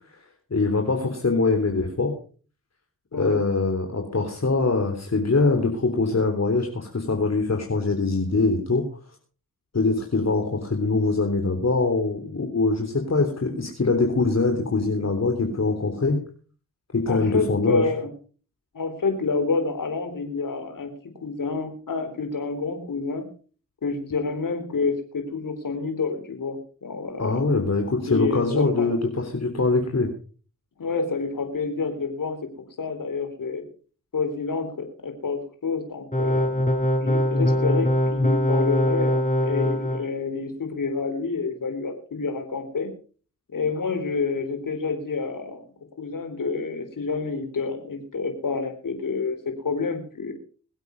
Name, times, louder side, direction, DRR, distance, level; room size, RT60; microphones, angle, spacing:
voice 1, 0.5-2.1 3.1-8.8 9.7-16.2 16.9-17.9 27.2-30.1, left 3 dB, 50° left, 3 dB, 3.6 m, -23 dB
voice 2, 17.1-18.1 18.7-20.9 21.2-23.3 23.8-27.4 28.0-28.9 30.8-32.5 32.8-33.6 34.1-36.5 37.0-42.9 43.5-45.6 46.0-49.4 49.6-50.3, left 4 dB, 70° left, 7 dB, 4.1 m, -28 dB
sound 1, 36.1-40.0, left 1 dB, 20° left, 5.7 m, -22 dB
23.0 x 8.2 x 5.4 m, 0.40 s
cardioid pair, 45°, 34 cm